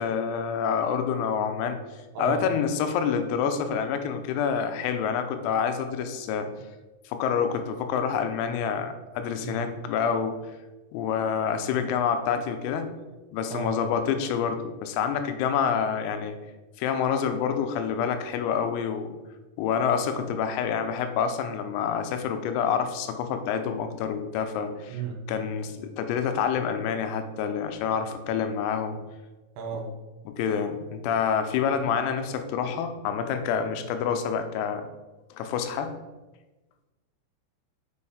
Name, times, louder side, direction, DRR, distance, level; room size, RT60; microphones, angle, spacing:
voice 1, 0.0-1.8 2.2-6.5 7.1-10.4 10.9-12.9 13.3-16.4 16.8-19.1 19.6-25.0 25.3-29.0 30.3-34.9 35.3-36.0, left 7 dB, 90° left, 7 dB, 3.5 m, -27 dB
voice 2, 2.1-2.5 9.4-9.7 13.5-13.8 24.9-25.2 29.6-29.9, right 6 dB, 85° right, 3 dB, 3.8 m, -33 dB
6.6 x 6.5 x 4.2 m, 1.1 s
omnidirectional pair, 5.9 m